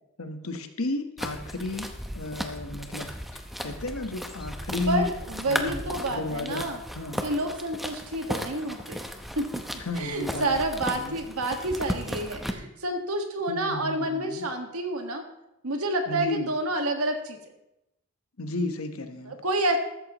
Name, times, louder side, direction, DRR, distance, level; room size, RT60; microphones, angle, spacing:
voice 1, 0.2-1.9 2.1-5.1 5.5-6.7 6.9-7.2 9.8-10.5 10.9-11.2 13.5-14.4 16.1-16.5 18.4-19.3, left 2 dB, 75° left, 7 dB, 1.2 m, -33 dB
sound 1, 1.2-12.5, equal, ahead, 0.8 m, -36 dB
voice 2, 4.9-6.8 7.2-9.0 9.4-9.6 10.0-15.3 15.6-17.4 19.2-19.8, right 1 dB, 80° right, 4 dB, 1.7 m, -29 dB
14.0 x 13.0 x 3.0 m, 0.88 s
head